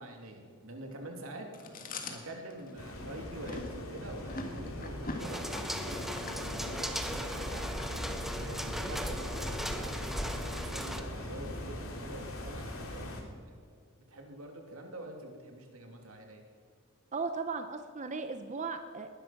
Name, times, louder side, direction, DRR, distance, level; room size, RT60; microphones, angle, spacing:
voice 1, 0.0-1.5 2.1-7.7 8.3-13.2 13.4-13.5 14.1-16.4, right 1 dB, 85° right, 2 dB, 2.8 m, -46 dB
Chewing mastication, 1.5-8.6, left 2 dB, 45° left, 1.8 m, -44 dB
sound 1, 2.8-13.2, left 1 dB, 90° left, 2.6 m, -40 dB
sound 2, 5.2-11.0, equal, ahead, 1.0 m, -38 dB
voice 2, 17.1-19.1, right 4 dB, 35° right, 8 dB, 0.7 m, -36 dB
19.5 x 11.5 x 5.9 m, 2.1 s
head